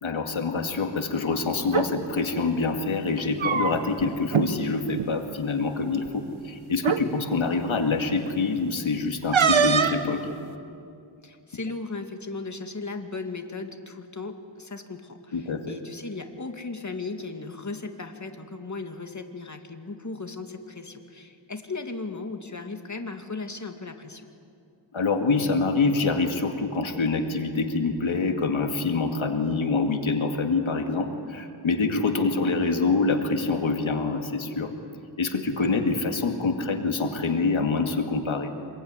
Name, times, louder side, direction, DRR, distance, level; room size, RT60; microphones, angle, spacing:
voice 1, 0.0-10.2 15.3-15.6 24.9-34.7 35.2-38.5, left 4 dB, 85° left, 4 dB, 2.4 m, -26 dB
sound 1, 1.6-1.9 3.1-4.0 4.3-4.5 4.9-5.1 6.1-6.2 6.8-7.0 9.3-10.1, right 6 dB, 85° right, 1.3 m, -22 dB
voice 2, 11.2-24.3, left 3 dB, 40° left, 5 dB, 2.4 m, -36 dB
26.0 x 22.5 x 9.9 m, 2.5 s
wide cardioid pair, 65°, 46 cm